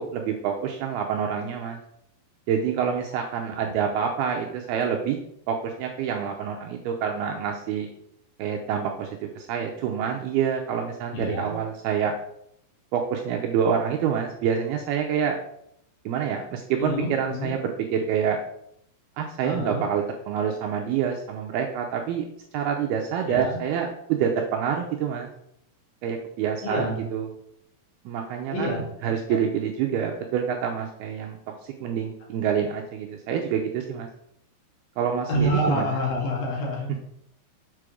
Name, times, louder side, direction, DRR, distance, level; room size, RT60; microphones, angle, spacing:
voice 1, 0.0-1.8 2.5-7.9 8.4-12.1 12.9-15.4 16.1-18.4 19.2-22.3 22.5-25.3 26.0-27.3 28.1-34.1 35.0-36.0, right 7 dB, 80° right, 2 dB, 2.3 m, -27 dB
voice 2, 11.1-11.6 16.8-17.5 19.4-19.9 23.3-23.6 26.6-27.0 28.5-29.4 35.3-37.1, equal, 60° left, -1 dB, 3.2 m, -28 dB
7.6 x 5.0 x 6.3 m, 0.73 s
omnidirectional pair, 5.2 m